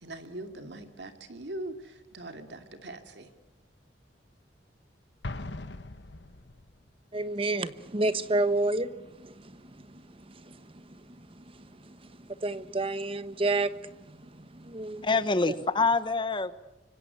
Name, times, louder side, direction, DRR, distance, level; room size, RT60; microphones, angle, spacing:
voice 1, 0.0-3.3, right 1 dB, 65° right, 2.8 m, -41 dB
Explosion, 5.2-6.8, left 2 dB, 65° left, 1.2 m, -40 dB
voice 2, 7.1-15.1 15.5-15.6, right 2 dB, 30° right, 1.2 m, -31 dB
voice 3, 15.0-16.5, left 3 dB, 25° left, 1.1 m, -26 dB
25.5 x 25.0 x 8.5 m
head